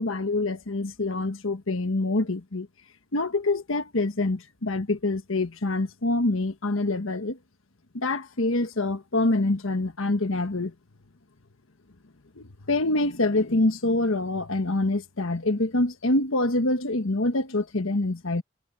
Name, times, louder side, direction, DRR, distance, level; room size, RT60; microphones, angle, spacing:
voice 1, 0.0-2.7 3.1-7.4 7.9-10.7 12.4-18.4, left 2 dB, 75° left, 1.4 m, -26 dB
head